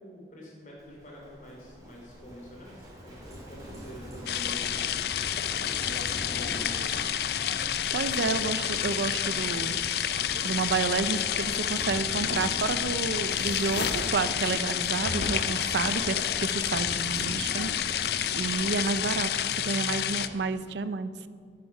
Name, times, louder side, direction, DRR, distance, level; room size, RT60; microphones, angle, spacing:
voice 1, 0.0-7.2 17.8-18.2, equal, 45° left, -2 dB, 3.0 m, -46 dB
Livestock farm animals working animals, 0.8-20.4, equal, 20° right, 3.1 m, -42 dB
sound 1, 4.3-20.3, left 10 dB, 60° left, 0.4 m, -29 dB
voice 2, 7.9-10.0 10.4-17.7 18.3-19.3 19.6-21.1, right 4 dB, 75° right, 12 dB, 0.5 m, -30 dB
sound 2, 12.5-12.9 13.2-14.2 15.0-15.7, left 2 dB, 85° left, 1.1 m, -35 dB
9.4 x 9.3 x 5.3 m, 2.1 s
head